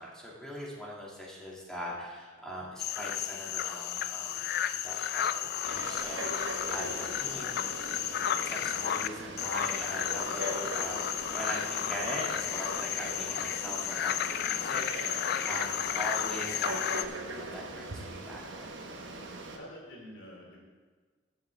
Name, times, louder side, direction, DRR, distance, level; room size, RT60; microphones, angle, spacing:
voice 1, 0.0-4.5 4.8-7.5 8.4-18.7, equal, 5° left, -5 dB, 2.1 m, -41 dB
sound 1, 2.8-9.1 9.4-17.1, left 10 dB, 55° left, 0.3 m, -33 dB
Frog, 5.6-19.6, right 2 dB, 75° right, 1.1 m, -41 dB
voice 2, 19.5-20.6, equal, 75° left, -3 dB, 2.8 m, -47 dB
15.0 x 7.6 x 3.4 m, 1.4 s
head